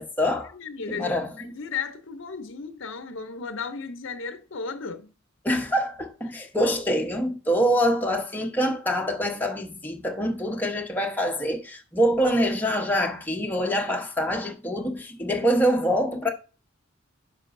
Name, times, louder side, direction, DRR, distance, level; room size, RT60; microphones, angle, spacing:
voice 1, 0.0-0.5 0.9-1.3 5.4-16.3, equal, 10° left, 1.0 m, -25 dB
voice 2, 0.5-5.1, left 5 dB, 65° left, 0.7 m, -35 dB
9.9 x 5.9 x 2.6 m
head